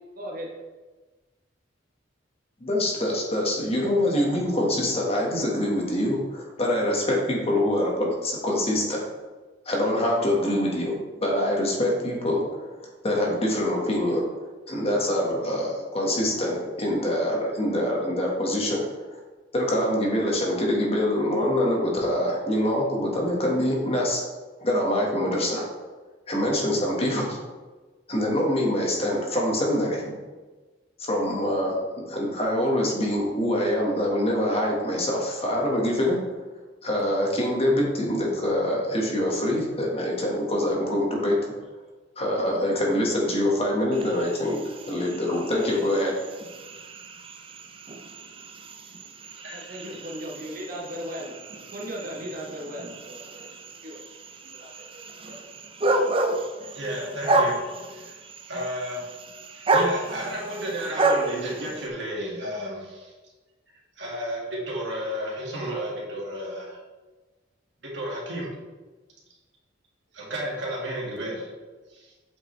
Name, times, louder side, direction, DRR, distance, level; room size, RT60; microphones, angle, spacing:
voice 1, 0.1-0.5 49.5-51.4 51.7-53.5 53.8-54.0 54.4-55.0 55.3-55.4, equal, 50° right, -1 dB, 1.0 m, -37 dB
voice 2, 2.6-9.0 9.6-10.9 11.2-14.2 14.7-18.8 19.1-19.2 19.5-24.2 24.6-25.6 26.3-27.4 28.1-30.1 31.0-31.8 32.0-36.2 36.8-41.4 42.2-46.1, left 1 dB, 35° left, -2 dB, 1.5 m, -25 dB
sound 1, 43.9-61.9, right 2 dB, 30° right, 0.5 m, -30 dB
voice 3, 49.4-49.8 56.7-57.6 57.9-58.1 58.5-59.0 59.5-63.1 64.0-66.8 67.8-68.5 70.1-71.5 71.9-72.1, equal, 65° right, -3 dB, 2.0 m, -32 dB
8.2 x 5.2 x 3.2 m, 1.3 s
head